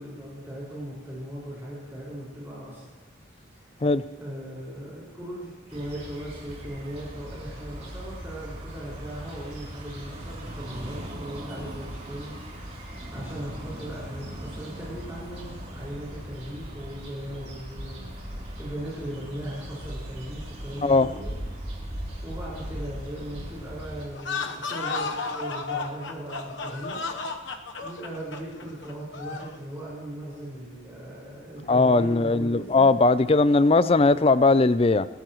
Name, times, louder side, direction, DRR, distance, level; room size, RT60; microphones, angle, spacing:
voice 1, 0.0-2.9 3.7-3.9 4.2-12.8 13.1-21.4 22.2-27.4 27.8-32.9, right 1 dB, 15° right, -9 dB, 5.4 m, -38 dB
sound 1, 5.7-24.1, equal, 30° right, 3.3 m, -39 dB
sound 2, 24.1-29.6, left 4 dB, 70° left, 1.1 m, -33 dB
voice 2, 31.7-35.1, left 3 dB, 30° left, 15 dB, 0.4 m, -19 dB
27.0 x 14.0 x 3.1 m, 1.4 s
head